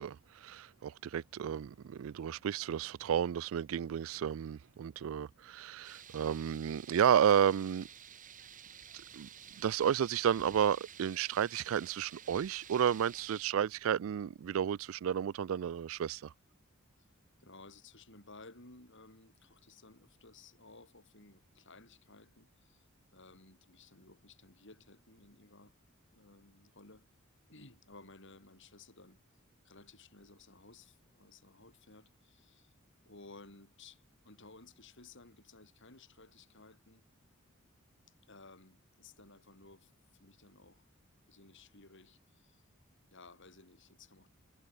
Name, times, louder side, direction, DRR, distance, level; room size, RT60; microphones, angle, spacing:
voice 1, 0.0-7.9 9.1-9.3 9.6-16.3, right 8 dB, 70° right, 0.3 m, -32 dB
sound 1, 5.8-13.4, right 8 dB, 40° right, 1.7 m, -52 dB
voice 2, 17.4-22.8 23.1-25.8 26.1-27.1 27.5-29.2 29.6-32.7 33.0-37.0 38.2-40.9 41.3-42.6 43.1-44.3, left 3 dB, 60° left, 5.4 m, -57 dB
head